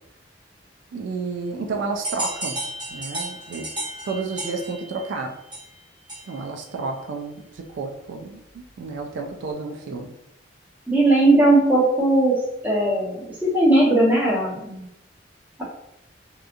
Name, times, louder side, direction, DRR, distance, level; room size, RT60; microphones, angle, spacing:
voice 1, 0.9-2.6 2.9-3.7 4.0-5.3 6.3-10.1, right 4 dB, 70° right, 4 dB, 0.3 m, -31 dB
sound 1, 2.0-6.6, right 1 dB, 25° right, 1.1 m, -33 dB
voice 2, 10.9-12.3 12.6-13.1 13.4-14.9, right 2 dB, 10° right, -6 dB, 0.8 m, -18 dB
2.8 x 2.3 x 2.5 m, 0.84 s
head